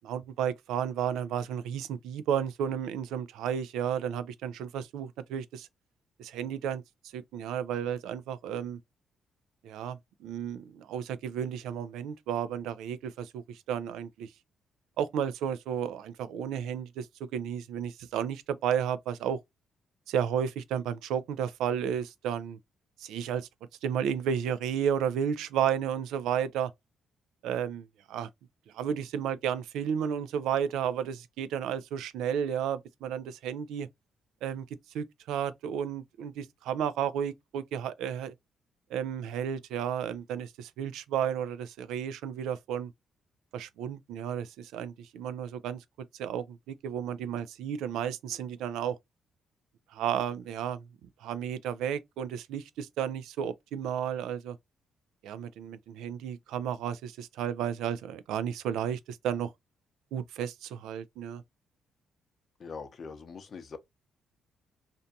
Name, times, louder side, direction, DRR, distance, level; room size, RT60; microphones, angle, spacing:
voice 1, 0.0-5.7 6.2-6.8 7.1-8.8 9.6-14.3 15.0-17.1 17.3-19.4 20.1-22.6 23.0-23.5 23.8-26.7 27.4-28.3 28.7-33.9 34.4-34.6 34.9-38.3 38.9-42.9 43.5-45.8 46.2-49.0 49.9-50.8 51.2-54.6 55.2-59.5 60.1-61.4, right 8 dB, 90° right, 0.3 m, -32 dB
voice 2, 62.6-63.8, left 5 dB, 50° left, 0.6 m, -42 dB
2.6 x 2.2 x 2.6 m
cardioid pair, 90°, 0 cm